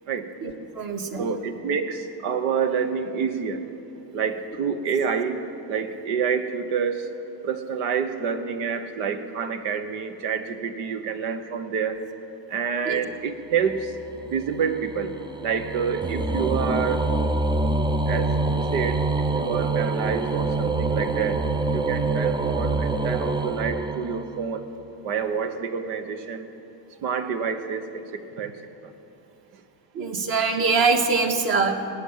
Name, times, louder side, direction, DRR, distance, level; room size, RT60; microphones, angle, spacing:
voice 1, 0.4-1.3 12.8-13.0 29.9-31.9, right 4 dB, 50° right, 3 dB, 1.8 m, -23 dB
voice 2, 1.2-3.6 4.1-5.4 5.7-7.1 7.4-12.0 12.5-13.9 14.3-15.1 15.4-17.1 18.1-21.4 21.7-24.7 25.0-26.5 27.0-28.6, right 6 dB, 90° right, 8 dB, 1.2 m, -28 dB
sound 1, 13.7-24.6, right 3 dB, 10° right, 0.4 m, -26 dB
19.5 x 9.1 x 7.4 m, 2.7 s
cardioid pair, 100°, 47 cm